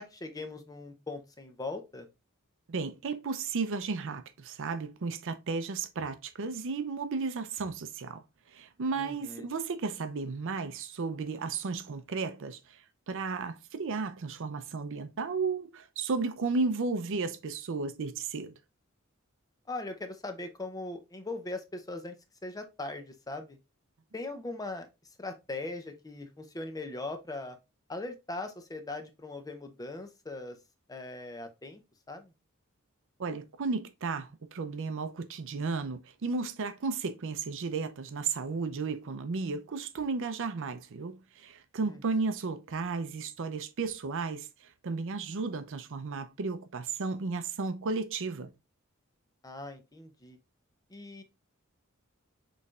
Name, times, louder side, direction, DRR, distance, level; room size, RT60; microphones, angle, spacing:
voice 1, 0.0-2.1 8.9-9.5 19.7-22.1 22.4-23.6 24.1-24.9 25.2-27.6 27.9-30.6 30.9-31.8 32.1-32.3 41.8-42.2 49.4-50.4 50.9-51.2, left 2 dB, 15° left, 0.6 m, -40 dB
voice 2, 2.7-8.2 8.5-18.6 33.2-48.5, right 4 dB, 60° right, 0.5 m, -34 dB
6.5 x 3.2 x 2.3 m
head